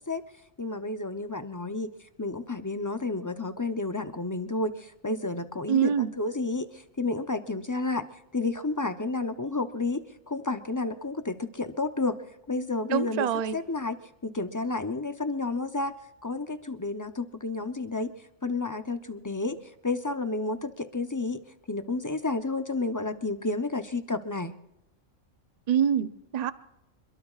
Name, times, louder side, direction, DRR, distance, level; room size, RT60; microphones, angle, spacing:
voice 1, 0.6-1.9 2.2-6.7 7.0-8.1 8.3-12.2 12.5-13.3 13.5-14.0 14.2-15.9 16.2-18.1 18.4-19.6 19.8-21.4 21.7-24.5, left 3 dB, 25° left, 9 dB, 0.4 m, -31 dB
voice 2, 5.7-6.1 12.9-13.5 25.7-26.5, right 8 dB, 45° right, 13 dB, 0.6 m, -25 dB
27.5 x 22.0 x 2.4 m, 0.91 s
omnidirectional pair, 1.3 m